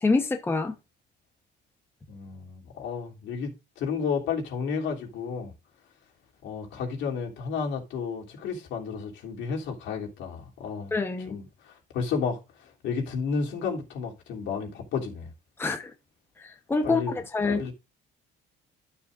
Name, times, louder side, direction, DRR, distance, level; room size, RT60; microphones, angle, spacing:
voice 1, 0.0-0.7 10.9-11.3 15.6-15.9 16.7-17.6, left 3 dB, 10° left, 1.0 m, -26 dB
voice 2, 2.1-5.5 6.4-10.9 11.3-11.5 11.9-12.4 12.8-15.3 16.8-17.1 17.4-17.7, left 5 dB, 75° left, 3.1 m, -32 dB
12.0 x 7.1 x 2.5 m
cardioid pair, 145°, 20 cm